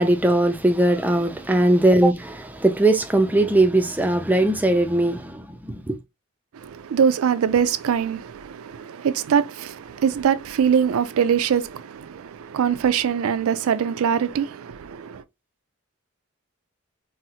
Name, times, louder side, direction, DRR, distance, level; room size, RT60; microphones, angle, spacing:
voice 1, 0.0-6.0, right 1 dB, 10° right, 0.3 m, -19 dB
voice 2, 6.5-15.2, right 7 dB, 75° right, 0.4 m, -23 dB
4.0 x 2.0 x 2.8 m
head